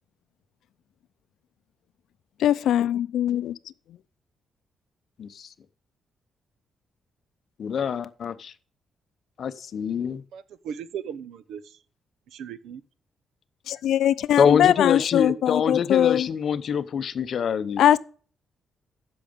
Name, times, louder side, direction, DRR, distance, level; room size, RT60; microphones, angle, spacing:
voice 1, 2.4-3.6 13.7-16.3 17.8-18.0, left 11 dB, 80° left, 0.5 m, -21 dB
voice 2, 5.2-5.5 7.6-8.5 9.4-10.2 14.4-17.9, left 7 dB, 45° left, 0.7 m, -25 dB
voice 3, 10.3-11.6 12.3-12.8, right 8 dB, 90° right, 0.8 m, -37 dB
10.5 x 7.0 x 5.2 m
cardioid pair, 165°, 0 cm